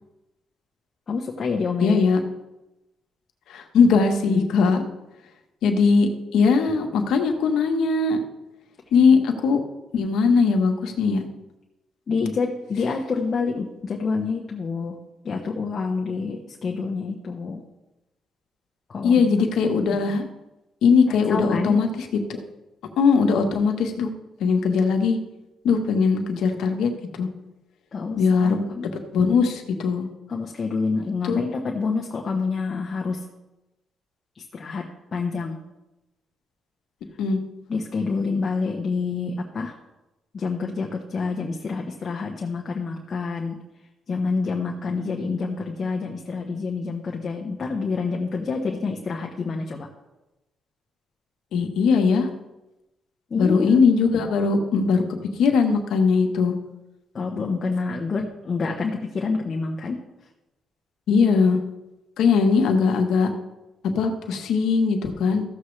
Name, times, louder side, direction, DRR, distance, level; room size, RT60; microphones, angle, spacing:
voice 1, 1.1-2.0 12.1-15.0 15.2-17.6 18.9-19.2 21.1-21.8 27.9-28.8 30.3-33.3 34.3-35.6 37.7-39.7 40.3-43.6 44.1-49.9 53.3-53.8 57.1-60.0, left 4 dB, 40° left, 0 dB, 1.1 m, -27 dB
voice 2, 1.8-2.2 3.5-4.8 5.6-8.2 8.9-9.6 9.9-11.2 19.0-20.2 20.8-22.4 23.0-24.1 24.4-25.2 25.6-26.9 27.2-27.3 28.2-28.6 29.1-30.0 31.2-31.4 37.2-37.4 51.5-52.3 53.4-55.0 55.4-56.5 61.1-61.6 62.2-63.3 63.9-65.4, left 5 dB, 80° left, 4 dB, 1.3 m, -20 dB
14.5 x 7.1 x 3.3 m, 0.99 s
cardioid pair, 90°, 0 cm